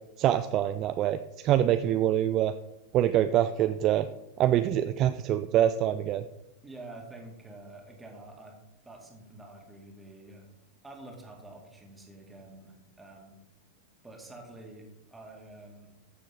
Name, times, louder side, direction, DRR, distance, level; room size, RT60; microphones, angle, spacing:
voice 1, 0.2-2.5 2.9-4.1 4.4-6.2, right 11 dB, 35° right, 11 dB, 0.4 m, -25 dB
voice 2, 6.6-8.6 8.8-10.5 10.8-13.4 14.0-15.9, right 2 dB, 10° right, 0 dB, 2.3 m, -48 dB
14.0 x 6.5 x 3.8 m, 0.93 s
figure-of-eight pair, 90°, 0 cm